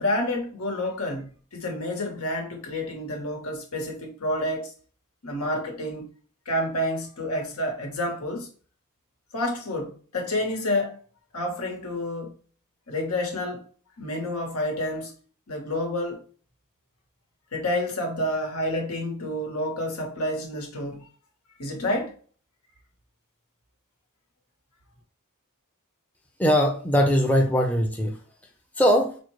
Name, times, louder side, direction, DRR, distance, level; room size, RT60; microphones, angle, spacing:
voice 1, 0.0-4.7 5.2-6.1 6.4-8.5 9.3-11.0 11.3-12.4 12.9-13.6 14.0-15.1 15.5-16.2 17.5-21.1 21.6-22.2, left 1 dB, 80° left, 1.2 m, -29 dB
voice 2, 26.4-28.1 28.8-29.2, equal, 5° left, 0.5 m, -21 dB
4.9 x 2.2 x 3.1 m
head